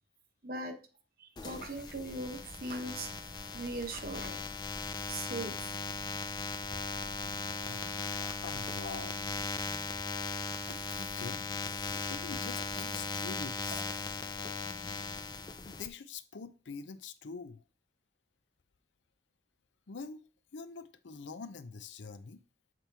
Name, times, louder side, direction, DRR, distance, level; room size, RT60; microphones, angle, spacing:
voice 1, 0.4-0.7 1.2-3.1 3.5-4.5 5.1-5.7 7.0-7.4 8.1-8.3 13.7-13.8, right 2 dB, 50° right, 1.0 m, -40 dB
sound 1, 1.4-15.9, left 4 dB, 25° left, 0.4 m, -38 dB
voice 2, 7.6-8.1 8.4-9.3 10.7-11.5 11.9-13.9 15.7-17.6 19.9-20.2 20.5-22.4, left 5 dB, 85° left, 0.6 m, -45 dB
7.6 x 4.3 x 3.4 m
head